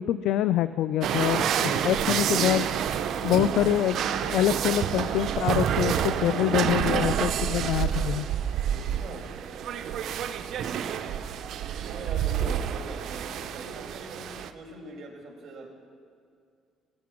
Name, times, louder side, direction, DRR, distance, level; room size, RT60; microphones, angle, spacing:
voice 1, 0.0-2.7 3.2-4.0 4.3-8.3, left 12 dB, 75° left, 14 dB, 0.3 m, -25 dB
sound 1, 1.0-14.5, right 8 dB, 65° right, 0.6 m, -28 dB
voice 2, 1.6-2.2 8.7-9.3 11.8-15.7, right 2 dB, 50° right, 1 dB, 3.0 m, -43 dB
18.5 x 8.3 x 6.2 m, 2.3 s
cardioid pair, 95°, 0 cm